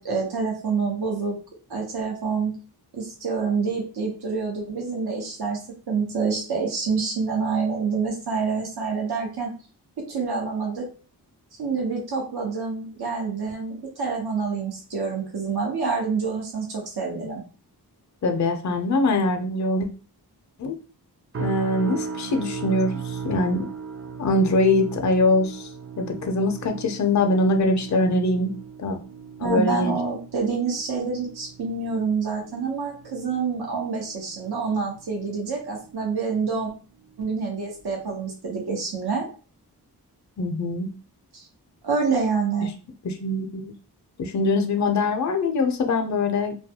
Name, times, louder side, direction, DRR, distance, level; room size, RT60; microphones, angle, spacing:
voice 1, 0.0-1.3 1.7-2.5 2.9-5.6 5.9-9.5 10.1-10.8 11.6-17.4 29.4-36.7 37.2-39.3 41.3-41.5 41.8-42.7, right 5 dB, 70° right, -1 dB, 0.8 m, -27 dB
voice 2, 18.2-19.9 20.6-20.8 21.4-23.7 24.2-25.7 26.0-28.5 28.8-29.0 29.4-30.0 40.4-40.9 43.0-43.7 44.2-46.5, left 2 dB, 45° left, 5 dB, 0.5 m, -23 dB
sound 1, 21.3-36.6 36.9-37.3 37.8-38.0, right 5 dB, 35° right, 0.4 m, -38 dB
2.3 x 2.2 x 2.7 m, 0.36 s
cardioid pair, 50°, 40 cm